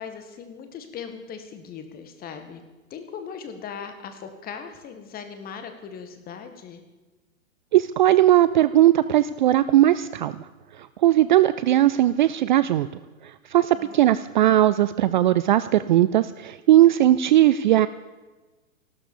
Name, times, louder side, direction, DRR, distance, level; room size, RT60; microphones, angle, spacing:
voice 1, 0.0-2.6 2.9-6.8 13.7-14.1, left 6 dB, 20° left, 7 dB, 1.9 m, -39 dB
voice 2, 7.7-10.3 10.8-12.9 13.5-17.9, right 13 dB, 35° right, 15 dB, 0.4 m, -18 dB
15.5 x 12.5 x 7.0 m, 1.2 s
hypercardioid pair, 125°, 41 cm